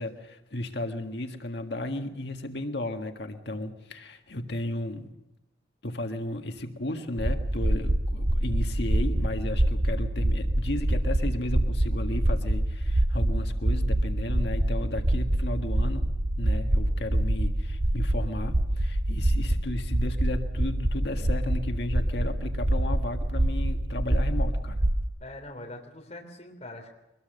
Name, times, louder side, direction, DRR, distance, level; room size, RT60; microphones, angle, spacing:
voice 1, 0.0-5.1 5.8-16.1 16.4-24.8, left 1 dB, 65° left, 5 dB, 1.8 m, -34 dB
sound 1, 7.2-25.0, right 1 dB, 45° right, 1.3 m, -26 dB
voice 2, 25.2-26.9, left 1 dB, 35° left, 1 dB, 3.4 m, -42 dB
23.5 x 21.0 x 6.7 m, 0.95 s
head